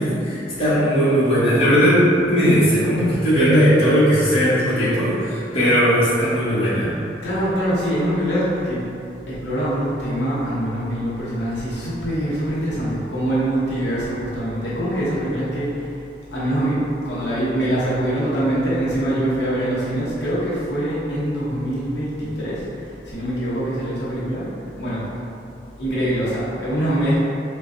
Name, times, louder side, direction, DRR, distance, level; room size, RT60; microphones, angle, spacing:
voice 1, 0.0-2.0 2.3-6.9, equal, 30° left, -12 dB, 1.2 m, -18 dB
voice 2, 7.2-8.8 9.3-16.0 16.3-24.5 24.8-25.2 25.8-27.2, right 1 dB, 80° left, -8 dB, 0.8 m, -24 dB
4.8 x 2.2 x 2.6 m, 2.6 s
head